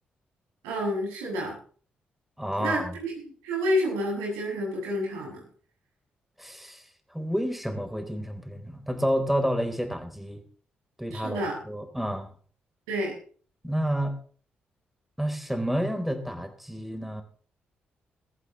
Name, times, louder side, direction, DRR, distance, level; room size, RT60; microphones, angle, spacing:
voice 1, 0.6-1.5 2.6-5.4 11.1-11.6 12.9-13.1, equal, 85° right, -2 dB, 7.5 m, -29 dB
voice 2, 2.4-2.9 6.4-6.8 7.1-10.4 11.0-11.4 11.6-12.3 13.6-14.1 15.2-17.2, equal, 5° right, 6 dB, 4.1 m, -29 dB
21.0 x 15.0 x 3.2 m, 0.44 s
hypercardioid pair, 40°, 5 cm